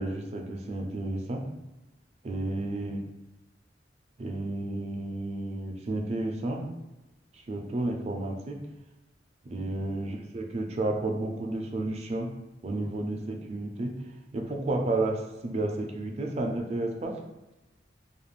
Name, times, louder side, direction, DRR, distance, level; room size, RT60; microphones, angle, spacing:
voice 1, 0.0-1.4 2.2-3.0 4.2-6.6 7.3-8.6 9.4-12.3 12.6-13.9 14.3-17.2, right 2 dB, 35° right, 2 dB, 0.3 m, -31 dB
2.4 x 2.1 x 3.1 m, 1.0 s
head